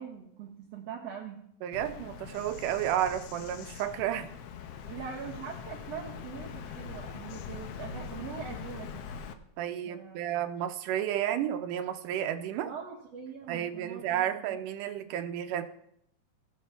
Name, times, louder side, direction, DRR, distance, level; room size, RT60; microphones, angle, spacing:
voice 1, 0.0-1.4 4.9-9.1 9.8-10.3 12.7-14.6, right 7 dB, 60° right, -3 dB, 1.9 m, -42 dB
voice 2, 1.6-4.3 9.6-12.7 13.5-15.6, right 11 dB, 85° right, 7 dB, 2.3 m, -32 dB
Bird vocalization bird call bird song, 1.7-9.3, left 7 dB, 85° left, 1.4 m, -42 dB
17.5 x 6.6 x 3.4 m, 0.73 s
omnidirectional pair, 3.6 m